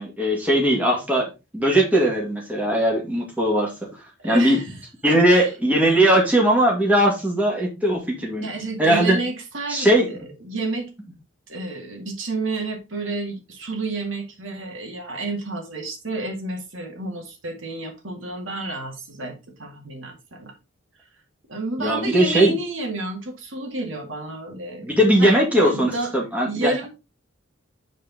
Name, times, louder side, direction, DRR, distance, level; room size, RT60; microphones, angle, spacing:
voice 1, 0.0-3.7 4.2-4.6 5.0-8.5 8.8-9.2 9.7-10.1 21.8-22.5 24.8-26.7, right 1 dB, 5° right, 2.2 m, -19 dB
voice 2, 4.2-4.8 5.1-5.5 8.4-10.9 11.5-20.5 21.5-24.9 25.2-26.1 26.4-26.9, right 2 dB, 75° right, 2.0 m, -30 dB
8.2 x 4.6 x 4.0 m
head